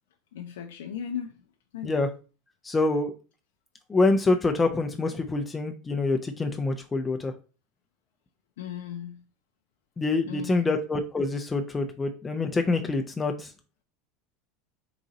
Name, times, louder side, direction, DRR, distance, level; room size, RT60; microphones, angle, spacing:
voice 1, 0.3-1.4 1.7-2.0 8.6-9.2 10.3-10.8, left 9 dB, 85° left, 4 dB, 0.4 m, -36 dB
voice 2, 2.6-3.1 3.9-7.3 10.0-13.5, left 3 dB, 20° left, 5 dB, 0.4 m, -26 dB
3.9 x 2.5 x 3.9 m, 0.34 s
supercardioid pair, 105°, 0 cm